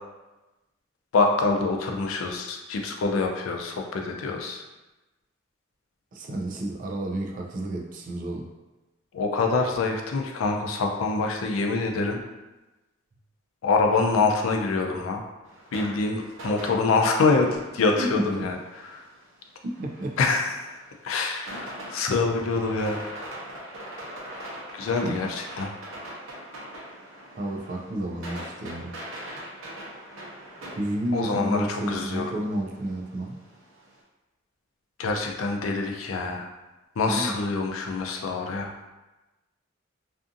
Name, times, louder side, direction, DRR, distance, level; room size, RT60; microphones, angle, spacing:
voice 1, 1.1-4.6 9.1-12.2 13.6-15.2 15.7-18.6 18.9-19.1 20.2-20.7 21.0-23.0 24.7-25.7 31.1-32.3 35.0-36.5 37.0-38.7, left 3 dB, 90° left, 3 dB, 0.4 m, -25 dB
voice 2, 6.1-8.5 17.9-18.5 19.6-20.2 25.0-25.3 27.4-29.0 30.8-33.4 37.1-37.4, right 1 dB, 40° right, 2 dB, 0.3 m, -31 dB
sound 1, 15.4-34.0, right 1 dB, 90° right, 0.7 m, -42 dB
2.5 x 2.4 x 2.5 m, 1.1 s
head